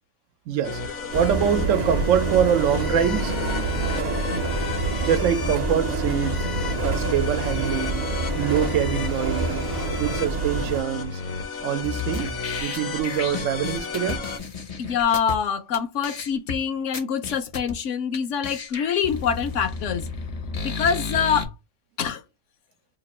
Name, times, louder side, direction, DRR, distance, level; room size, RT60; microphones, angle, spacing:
voice 1, 0.5-3.4 5.0-6.5 6.8-8.0 8.4-9.7 10.0-11.2 11.6-14.3, right 9 dB, 70° right, 1.0 m, -24 dB
sound 1, 0.6-14.4, left 5 dB, 90° left, 1.3 m, -33 dB
sound 2, 1.1-10.8, right 3 dB, 45° right, 0.5 m, -27 dB
sound 3, 11.8-15.4 15.7-15.8 16.0-16.6 16.9-17.7 18.1-18.2 18.4-21.4, left 4 dB, 40° left, 0.5 m, -32 dB
voice 2, 14.8-20.1 20.6-21.5 22.0-22.2, left 7 dB, 70° left, 0.9 m, -25 dB
2.9 x 2.4 x 4.1 m
omnidirectional pair, 1.4 m